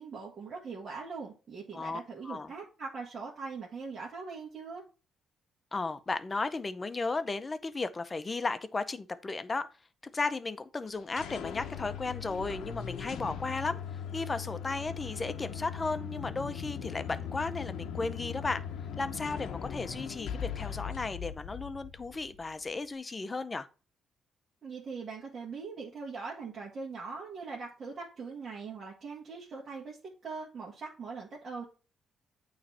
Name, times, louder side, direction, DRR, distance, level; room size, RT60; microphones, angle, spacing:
voice 1, 0.0-4.8 24.6-30.0 30.2-31.6, right 4 dB, 45° right, 1.8 m, -41 dB
voice 2, 1.7-2.5 5.7-9.7 10.1-13.8 14.1-18.6 19.0-23.7, left 3 dB, 25° left, 0.6 m, -35 dB
sound 1, 10.9-22.5, left 8 dB, 80° left, 0.7 m, -39 dB
8.7 x 3.2 x 4.2 m
cardioid pair, 90°, 0 cm